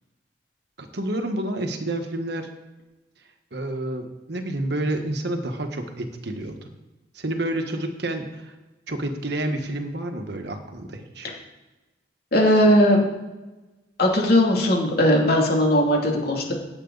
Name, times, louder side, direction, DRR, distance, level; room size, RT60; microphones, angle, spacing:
voice 1, 0.8-2.5 3.5-6.7 7.1-8.5 8.9-11.3, right 1 dB, 65° right, 6 dB, 1.4 m, -29 dB
voice 2, 12.3-13.1 14.0-16.5, left 1 dB, 55° left, 0 dB, 2.7 m, -18 dB
17.0 x 8.1 x 4.0 m, 1.1 s
head